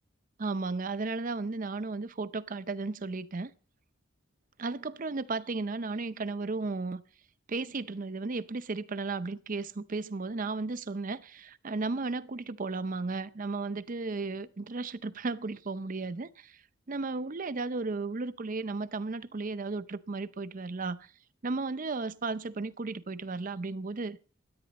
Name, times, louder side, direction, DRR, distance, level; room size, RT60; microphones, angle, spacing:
voice 1, 0.4-3.5 4.6-7.0 7.5-16.6 16.9-21.1 21.4-24.2, right 3 dB, 40° right, 0.6 m, -34 dB
16.5 x 11.0 x 4.1 m
head